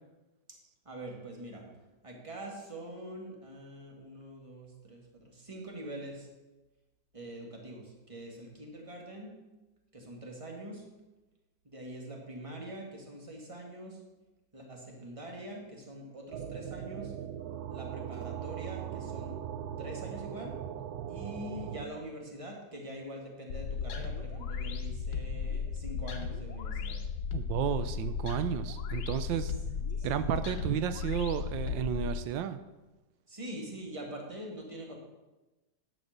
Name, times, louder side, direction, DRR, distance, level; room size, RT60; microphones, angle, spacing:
voice 1, 0.9-1.7 2.0-6.3 7.1-9.3 9.9-10.8 11.6-14.0 14.5-17.1 17.7-19.4 19.8-20.5 21.1-27.0 29.9-30.3 33.3-34.9, right 1 dB, 20° right, 0 dB, 1.9 m, -44 dB
sound 1, 16.3-21.9, right 9 dB, 70° right, 0.9 m, -39 dB
sound 2, 23.5-32.2, left 5 dB, 75° left, 1.6 m, -35 dB
voice 2, 27.3-29.5 30.0-32.6, right 9 dB, 90° right, 12 dB, 1.4 m, -32 dB
10.5 x 6.3 x 6.5 m, 1.1 s
omnidirectional pair, 2.0 m